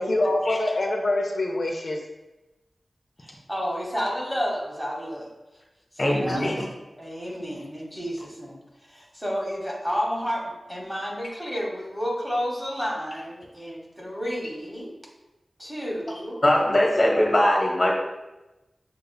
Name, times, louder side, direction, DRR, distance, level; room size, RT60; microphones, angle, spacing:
voice 1, 0.0-2.0, left 1 dB, 70° left, 1 dB, 0.4 m, -25 dB
voice 2, 3.2-5.3 6.0-6.7 7.0-8.6 8.9-14.9 15.6-16.4, equal, 10° right, -3 dB, 1.0 m, -31 dB
voice 3, 6.0-6.7 16.4-17.9, left 1 dB, 40° left, -1 dB, 0.8 m, -21 dB
6.7 x 2.3 x 2.2 m, 1.0 s
wide cardioid pair, 85°, 0 cm